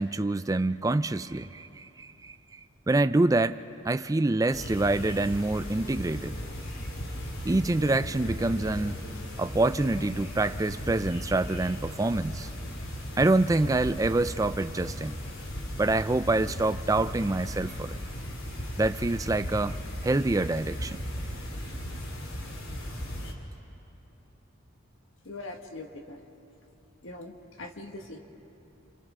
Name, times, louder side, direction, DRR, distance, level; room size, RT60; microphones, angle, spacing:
voice 1, 0.0-2.6 2.9-3.6 3.8-6.4 7.4-9.1 9.4-12.5 13.2-15.2 15.8-18.0 18.8-21.0, right 2 dB, 15° right, 11 dB, 0.4 m, -26 dB
sound 1, 4.5-23.3, equal, 90° left, 2.8 m, -37 dB
voice 2, 25.3-26.2 27.0-27.3 27.6-28.2, left 2 dB, 70° left, 3 dB, 1.8 m, -41 dB
29.0 x 28.0 x 3.7 m, 2.8 s
head